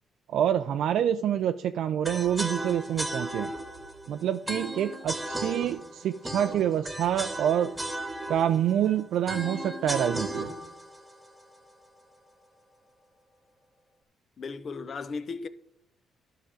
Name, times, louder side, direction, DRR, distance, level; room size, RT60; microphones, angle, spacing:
voice 1, 0.3-3.5 4.1-7.7 8.3-10.5, right 10 dB, 75° right, 0.4 m, -27 dB
sound 1, 2.0-12.1, right 1 dB, 10° right, 1.6 m, -36 dB
voice 2, 14.4-15.5, left 4 dB, 45° left, 0.7 m, -36 dB
11.5 x 5.9 x 5.0 m
cardioid pair, 90°, 0 cm